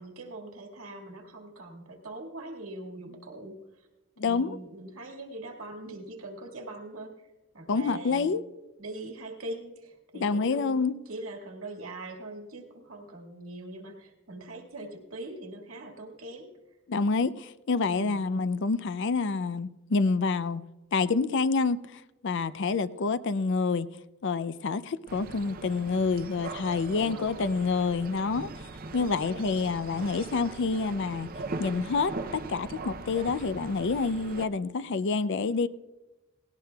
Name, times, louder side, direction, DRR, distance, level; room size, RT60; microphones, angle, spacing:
voice 1, 0.0-3.9 4.2-7.3 7.5-8.3 8.8-16.5 17.9-18.2 26.9-27.6 29.0-29.8, right 1 dB, 75° right, 1.9 m, -42 dB
voice 2, 4.2-4.6 7.7-8.4 10.2-11.0 16.9-20.6 20.9-23.9 24.2-28.5 28.9-31.3 31.6-35.7, left 4 dB, 55° left, 0.4 m, -28 dB
sound 1, 25.1-34.5, right 3 dB, 40° right, 0.6 m, -40 dB
18.5 x 17.5 x 2.3 m
head